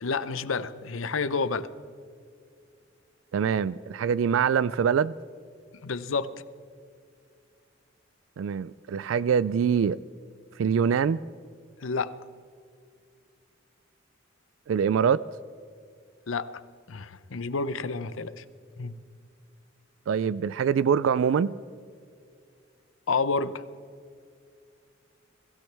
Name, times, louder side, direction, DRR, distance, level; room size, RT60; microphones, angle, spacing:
voice 1, 0.0-1.7 5.8-6.3 11.8-12.2 16.3-16.6 16.9-18.4 18.8-18.9 23.1-23.6, left 4 dB, 90° left, 15 dB, 0.7 m, -29 dB
voice 2, 3.3-5.1 8.4-10.0 10.6-11.2 14.7-15.2 20.1-21.6, right 7 dB, 75° right, 18 dB, 0.3 m, -24 dB
22.5 x 15.5 x 3.4 m, 2.3 s
head